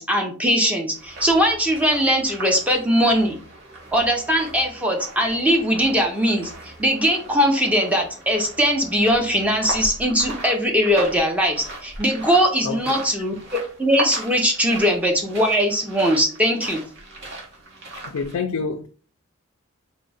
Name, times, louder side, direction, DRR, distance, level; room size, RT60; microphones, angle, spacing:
voice 1, 0.0-3.4 3.9-13.3 13.8-16.8, equal, 5° right, 0.5 m, -20 dB
sound 1, 0.9-18.4, right 1 dB, 55° right, 1.1 m, -38 dB
voice 2, 12.6-13.0 18.0-18.9, left 5 dB, 80° left, 0.4 m, -28 dB
3.5 x 2.0 x 3.9 m
head